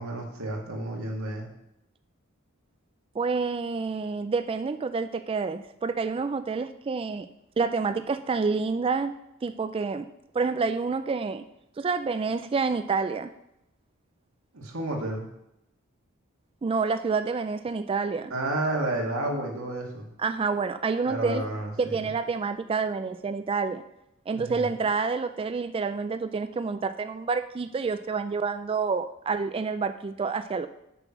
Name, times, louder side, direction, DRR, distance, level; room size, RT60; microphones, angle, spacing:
voice 1, 0.0-1.5 14.5-15.2 18.3-20.1 21.0-22.1 24.3-24.7, right 1 dB, 75° right, 0 dB, 2.0 m, -31 dB
voice 2, 3.1-7.3 7.6-9.1 9.4-10.1 10.3-11.4 11.8-13.3 16.6-18.3 20.2-21.4 21.8-23.8 24.3-30.7, right 4 dB, 25° right, 10 dB, 0.3 m, -28 dB
6.7 x 6.2 x 5.9 m, 0.82 s
head